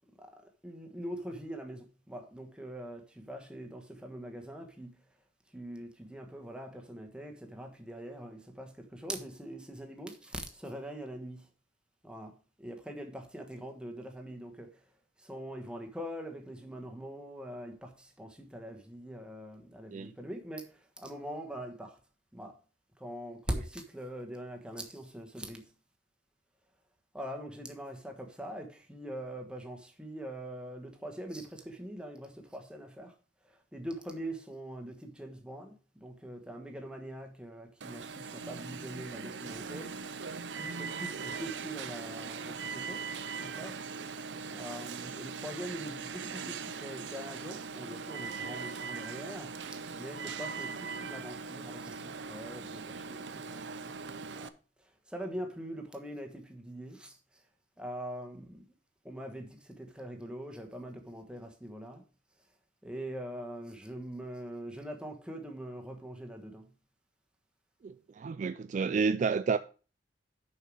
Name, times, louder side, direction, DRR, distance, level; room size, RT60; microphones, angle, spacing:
voice 1, 0.6-5.0 5.5-11.4 12.0-12.3 12.6-14.7 15.2-20.7 21.0-22.0 22.3-22.6 23.0-25.6 27.1-33.1 33.7-39.9 40.5-43.0 43.4-43.8 44.5-53.9 54.3-54.5 55.1-57.2 57.8-58.6 59.0-62.0 62.8-66.7, right 1 dB, 5° right, 1.3 m, -43 dB
Alarm, 37.8-54.5, right 5 dB, 80° right, 0.6 m, -40 dB
voice 2, 67.8-69.6, right 5 dB, 45° right, 0.3 m, -30 dB
6.6 x 5.7 x 6.3 m
head